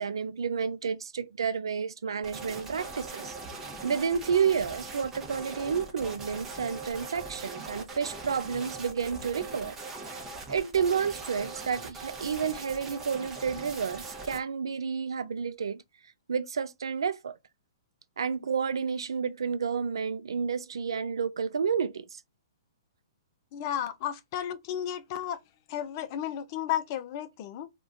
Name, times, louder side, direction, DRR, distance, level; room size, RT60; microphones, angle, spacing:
voice 1, 0.0-3.4 3.8-9.8 10.5-15.8 16.3-17.4 18.2-22.2, right 6 dB, 75° right, 0.4 m, -30 dB
sound 1, 2.2-14.4, right 3 dB, 15° right, 0.8 m, -41 dB
voice 2, 23.5-25.4 25.7-27.7, left 10 dB, 40° left, 0.4 m, -33 dB
2.3 x 2.2 x 3.6 m
hypercardioid pair, 125°, 2 cm